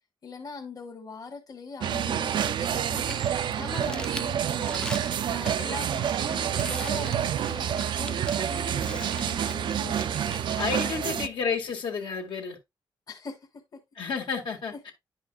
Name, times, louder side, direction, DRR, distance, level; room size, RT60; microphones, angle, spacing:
voice 1, 0.2-3.2 3.6-4.8 5.2-10.3 11.0-11.3 13.1-13.6 14.7-14.9, left 4 dB, 50° left, 1.5 m, -41 dB
sound 1, 1.8-11.3, right 9 dB, 75° right, 0.4 m, -28 dB
Crumpling crinkling, 2.6-11.7, left 1 dB, 10° left, 0.5 m, -43 dB
voice 2, 10.6-12.6 14.0-14.9, left 5 dB, 80° left, 1.9 m, -31 dB
10.0 x 5.6 x 2.3 m
wide cardioid pair, 135°, 8 cm